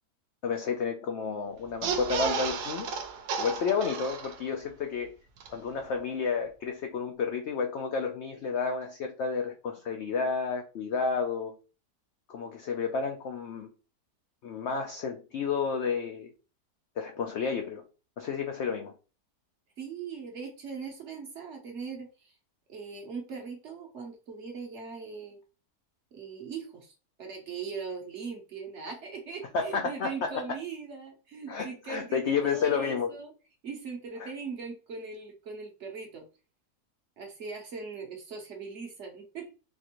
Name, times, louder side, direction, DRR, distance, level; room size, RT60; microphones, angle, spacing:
voice 1, 0.4-2.9 3.4-5.1 5.5-11.6 12.3-13.7 14.4-16.3 17.0-17.8 18.2-18.9 29.5-30.3 31.5-33.1 34.2-34.3, left 5 dB, 75° left, 0.6 m, -31 dB
sound 1, 1.7-4.7 5.0-5.1 5.4-5.5, right 6 dB, 80° right, 1.2 m, -33 dB
voice 2, 19.8-22.4 22.7-25.4 26.1-33.3 33.6-36.2 37.2-39.6, right 5 dB, 55° right, 0.9 m, -40 dB
4.2 x 2.5 x 2.9 m
omnidirectional pair, 1.7 m